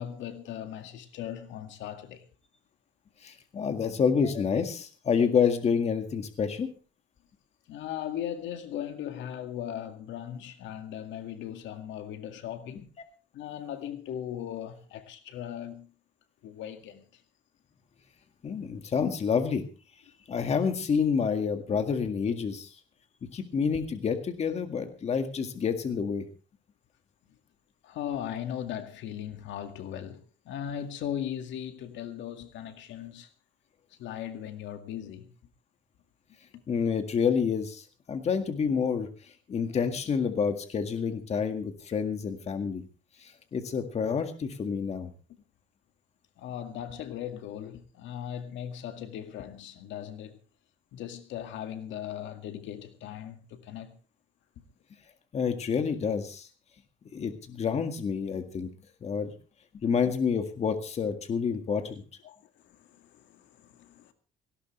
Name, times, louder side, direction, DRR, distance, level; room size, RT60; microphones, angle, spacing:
voice 1, 0.0-2.2 7.7-12.9 13.3-15.9 16.4-17.2 27.8-33.3 34.0-35.3 46.4-50.4 50.9-54.0 62.2-64.1, left 10 dB, 75° left, 2.0 m, -38 dB
voice 2, 3.2-6.7 18.4-19.6 20.3-22.7 23.3-26.3 36.7-42.8 43.2-45.1 55.3-56.5 57.1-58.7 59.0-59.3 59.8-62.0, left 6 dB, 35° left, 1.9 m, -28 dB
18.0 x 17.0 x 3.3 m
cardioid pair, 155°, 19 cm